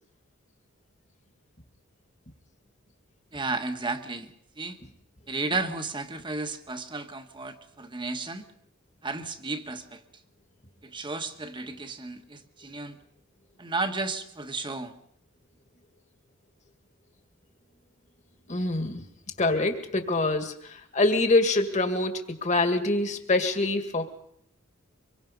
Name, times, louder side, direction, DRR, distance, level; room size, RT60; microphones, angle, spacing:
voice 1, 3.3-4.8 5.3-8.4 9.0-10.0 10.8-13.0 13.6-14.9, right 3 dB, 25° right, 7 dB, 1.4 m, -33 dB
voice 2, 18.5-19.0 19.4-24.0, left 2 dB, 35° left, 6 dB, 2.0 m, -25 dB
25.0 x 23.0 x 5.3 m, 0.70 s
head